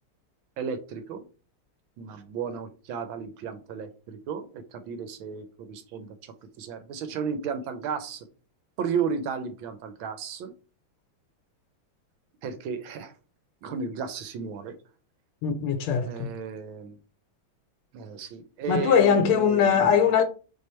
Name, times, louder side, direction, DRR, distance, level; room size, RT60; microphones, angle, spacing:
voice 1, 0.6-1.2 2.0-8.3 8.8-10.5 12.4-13.1 13.6-14.7 16.0-17.0 17.9-20.1, right 6 dB, 75° right, 1.5 m, -34 dB
voice 2, 15.4-16.3 18.7-20.2, left 7 dB, 90° left, 1.5 m, -21 dB
3.7 x 3.3 x 4.2 m
omnidirectional pair, 2.3 m